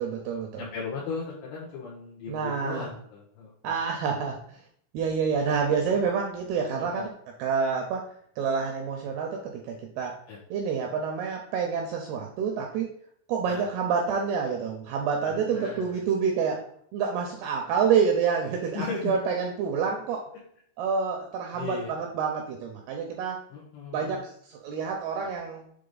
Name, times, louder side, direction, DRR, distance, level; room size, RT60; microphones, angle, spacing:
voice 1, 0.0-0.6 2.3-2.9 3.6-4.6 4.9-7.1 7.4-8.0 8.4-10.1 10.5-12.9 13.3-16.6 16.9-20.2 20.8-23.4 23.9-25.7, right 6 dB, 85° right, 2 dB, 2.3 m, -28 dB
voice 2, 0.6-3.8 6.7-7.1 10.3-10.4 13.5-13.6 15.3-16.0 18.7-19.1 21.5-21.9 23.5-24.2, left 5 dB, 80° left, -5 dB, 3.4 m, -37 dB
7.7 x 3.3 x 3.9 m, 0.65 s
omnidirectional pair, 5.2 m